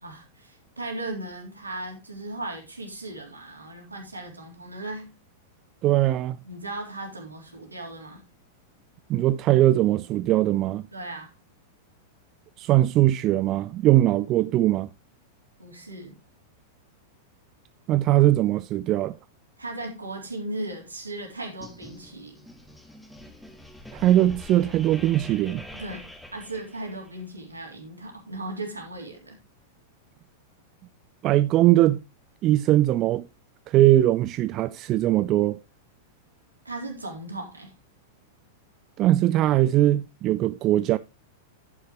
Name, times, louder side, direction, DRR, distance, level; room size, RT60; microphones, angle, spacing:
voice 1, 0.0-5.1 6.4-8.2 10.9-11.3 15.6-16.2 19.6-22.3 25.7-26.1 26.3-29.4 36.6-37.7, right 2 dB, 80° right, 3.6 m, -37 dB
voice 2, 5.8-6.4 9.1-10.8 12.6-14.9 17.9-19.2 23.9-25.6 31.2-32.0 32.4-33.3 33.7-35.6 39.0-41.0, right 14 dB, 35° right, 0.4 m, -21 dB
sound 1, 21.6-27.2, left 1 dB, ahead, 1.9 m, -45 dB
11.0 x 9.4 x 3.0 m
figure-of-eight pair, 95°, 0 cm